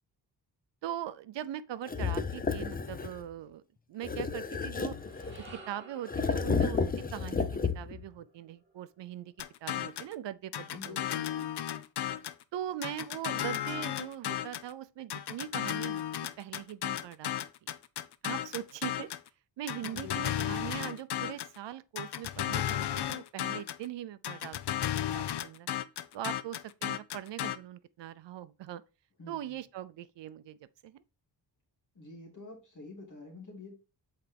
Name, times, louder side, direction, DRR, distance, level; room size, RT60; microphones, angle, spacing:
voice 1, 0.8-3.6 3.9-5.0 5.7-6.8 7.1-7.5 7.7-9.3 9.6-11.2 12.5-16.0 16.4-17.3 18.2-19.1 19.6-25.7 26.1-28.8 29.3-30.6 30.8-31.0, right 11 dB, 75° right, 0.5 m, -41 dB
sound 1, 1.9-3.2 4.0-5.6 6.1-8.0, left 5 dB, 20° left, 0.5 m, -32 dB
sound 2, 4.7-9.2, right 2 dB, 25° right, 2.5 m, -54 dB
sound 3, 9.4-10.1 10.5-12.4 12.8-14.7 15.1-19.3 19.7-21.6 22.0-23.8 24.2-27.6, left 11 dB, 65° left, 0.6 m, -34 dB
voice 2, 10.7-11.5 19.7-20.7 29.2-29.6 31.9-33.7, left 3 dB, 45° left, 2.6 m, -48 dB
8.2 x 4.3 x 3.4 m
wide cardioid pair, 135°, 43 cm